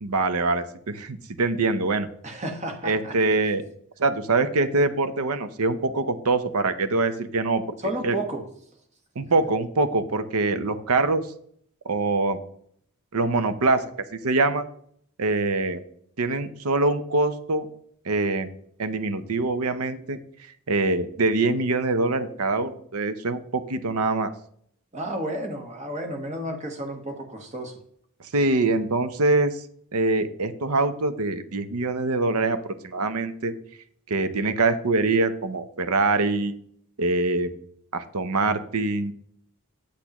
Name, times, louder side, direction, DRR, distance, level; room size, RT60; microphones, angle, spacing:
voice 1, 0.0-2.1 2.8-3.7 4.0-7.6 8.0-8.2 9.2-11.3 11.8-12.4 13.1-14.7 15.2-15.8 16.2-17.7 18.1-18.5 18.8-20.2 20.7-24.3 28.3-29.6 29.9-32.6 32.8-33.5 34.1-36.6 37.0-37.5 37.9-39.1, right 3 dB, 80° right, 11 dB, 0.7 m, -24 dB
voice 2, 2.2-3.2 7.8-8.5 24.9-27.8, right 1 dB, 30° right, 4 dB, 1.3 m, -32 dB
8.4 x 8.4 x 3.0 m, 0.64 s
head